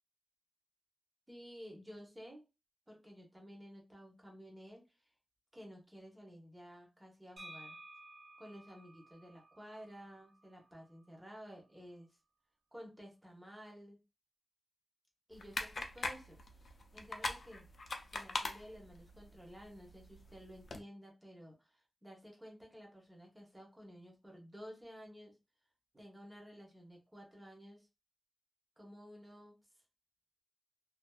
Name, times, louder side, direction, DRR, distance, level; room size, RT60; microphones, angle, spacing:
voice 1, 1.3-2.4 2.9-4.8 5.5-7.8 8.4-12.1 12.7-14.0 15.3-17.7 18.1-25.3 25.9-27.9 28.8-29.6, equal, 10° right, 0 dB, 0.8 m, -53 dB
sound 1, 7.4-11.1, right 1 dB, 45° right, 0.6 m, -56 dB
sound 2, 15.3-20.8, left 3 dB, 50° left, 0.4 m, -43 dB
2.4 x 2.4 x 2.2 m, 0.27 s
wide cardioid pair, 175°, 0 cm